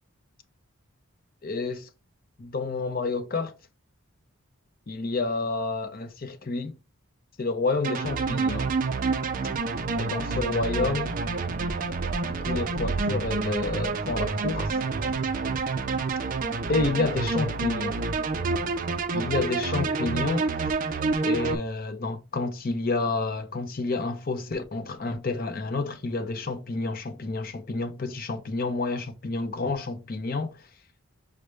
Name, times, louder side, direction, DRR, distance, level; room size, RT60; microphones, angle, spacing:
voice 1, 1.4-1.9 2.4-3.6 4.9-6.8 7.4-8.7 10.0-11.2 12.2-14.8 16.7-18.0 19.1-20.7 21.2-30.7, left 3 dB, 45° left, 0.6 m, -29 dB
sound 1, 7.8-21.6, right 4 dB, 40° right, 0.4 m, -28 dB
6.3 x 2.1 x 3.2 m
head